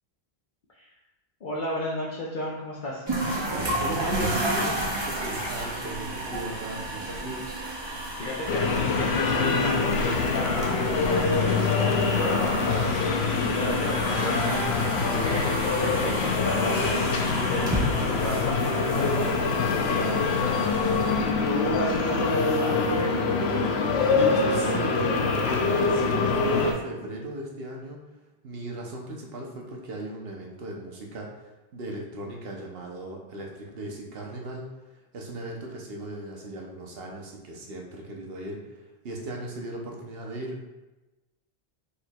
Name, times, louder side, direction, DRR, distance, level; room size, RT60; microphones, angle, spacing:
voice 1, 1.4-3.0 7.8-11.9 12.2-17.8 18.1-19.3 19.9-21.0 21.4-23.3, left 1 dB, 55° left, -5 dB, 0.8 m, -33 dB
sound 1, 3.1-21.9, right 1 dB, 30° right, 0.7 m, -33 dB
voice 2, 3.8-7.4 24.1-28.0 28.4-34.7 34.9-40.7, right 1 dB, 70° right, 0 dB, 1.0 m, -37 dB
sound 2, 8.5-26.7, left 4 dB, 80° left, 0.9 m, -25 dB
4.9 x 4.5 x 2.3 m, 1.1 s
omnidirectional pair, 1.1 m